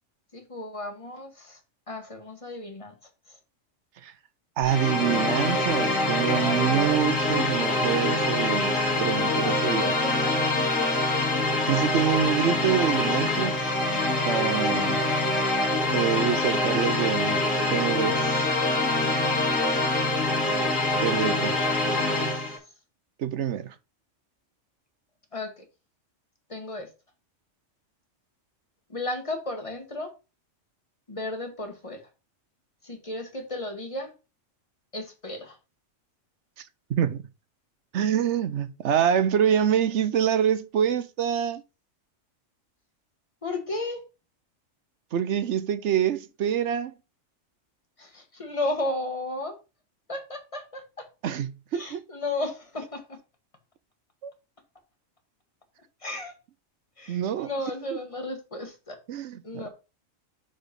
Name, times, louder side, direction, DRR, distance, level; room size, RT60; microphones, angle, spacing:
voice 1, 0.3-1.6 1.9-2.9 3.3-3.4 6.3-7.1 9.1-10.7 16.2-16.7 21.1-22.6 25.3-25.6 26.5-26.9 28.9-30.1 31.1-32.0 32.8-34.1 34.9-35.6 43.4-44.0 48.0-49.5 50.1-51.1 51.7-53.2 56.0-56.3 57.0-59.0 59.4-59.7, left 2 dB, 25° left, 1.6 m, -35 dB
sound 1, 4.6-22.6, left 2 dB, 75° left, 2.6 m, -25 dB
voice 2, 4.6-9.9 11.6-13.8 14.3-15.0 15.9-17.4 17.7-18.5 21.0-21.5 23.2-23.7 37.0-37.2 37.9-41.6 45.1-46.9 51.2-51.5 51.7-52.0 54.2-54.3 57.1-57.5 59.1-59.7, right 9 dB, 65° right, 0.9 m, -26 dB
6.0 x 5.2 x 5.2 m
omnidirectional pair, 1.4 m